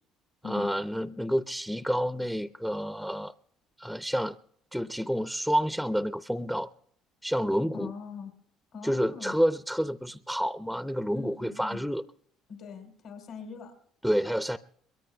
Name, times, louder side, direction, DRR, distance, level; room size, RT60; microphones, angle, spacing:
voice 1, 0.4-3.3 3.8-4.4 4.7-6.7 7.2-7.9 8.8-12.0 14.0-14.6, equal, ahead, 0.5 m, -29 dB
voice 2, 7.7-8.3 8.7-9.3 11.1-11.8 12.5-13.7, left 5 dB, 75° left, 3.1 m, -41 dB
23.5 x 22.0 x 2.2 m
supercardioid pair, 90°, 0 cm